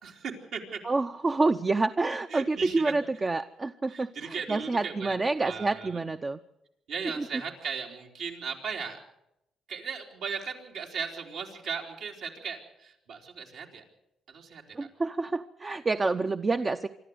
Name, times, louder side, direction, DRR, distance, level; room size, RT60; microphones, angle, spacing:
voice 1, 0.0-0.8 2.3-2.9 3.9-6.0 6.9-9.0 9.7-13.8 14.3-14.9, right 6 dB, 75° right, 1 dB, 3.5 m, -37 dB
voice 2, 0.8-6.4 7.2-7.3 14.7-16.9, right 3 dB, 30° right, 8 dB, 0.7 m, -28 dB
25.0 x 13.0 x 7.9 m, 0.84 s
cardioid pair, 90°, 0 cm